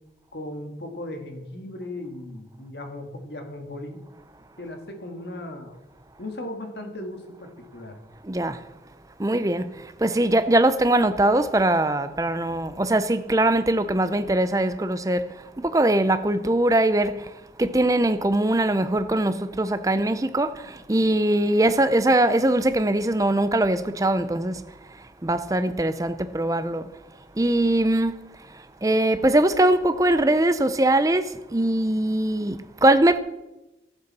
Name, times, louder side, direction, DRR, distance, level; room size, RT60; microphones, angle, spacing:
voice 1, 0.3-4.0 4.6-5.8 6.2-8.0, left 1 dB, 75° left, 1.7 m, -37 dB
voice 2, 8.2-8.7 9.2-24.6 24.9-27.0 27.4-28.2 28.5-33.2, right 1 dB, 20° right, 0.5 m, -22 dB
14.5 x 8.1 x 4.2 m
head